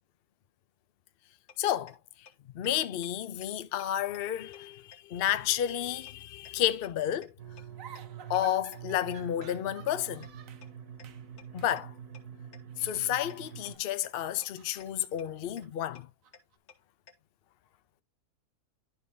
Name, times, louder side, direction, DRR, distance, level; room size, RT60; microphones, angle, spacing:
sound 1, 1.5-1.6 1.9-2.0 2.3-2.4 2.6-2.7 3.0-3.1 3.4-3.5 3.8-3.9 4.1-4.2 4.5-4.6 4.9-5.0 5.3-5.4 5.7-5.8 6.1-6.2 6.4-6.5 6.8-6.9 7.2-7.3 7.6-7.7 8.0-8.1 8.3-8.4 8.7-8.8 9.1-9.2 9.5-9.6 9.9-10.0 10.2-10.3 10.6-10.7 11.0-11.1 11.4-11.5 11.8-11.9 12.1-12.2 12.5-12.6 12.9-13.0 13.3-13.4 13.7-13.8 14.0-14.1 14.4-14.5 14.8-14.9 15.2-15.3 15.6-15.7 16.0-16.1 16.3-16.4 16.7-16.8 17.1-17.2, left 6 dB, 75° left, 2.0 m, -52 dB
voice 1, 1.6-2.0 2.5-7.3 8.3-10.3 11.5-11.9 12.8-16.1, left 11 dB, 55° left, 0.6 m, -31 dB
sound 2, 7.4-13.7, right 8 dB, 85° right, 1.7 m, -46 dB
sound 3, 7.8-10.7 11.0-11.3 11.6-11.8 12.7-13.8 14.2-16.6, right 8 dB, 65° right, 1.2 m, -53 dB
11.5 x 4.0 x 3.6 m
omnidirectional pair, 1.6 m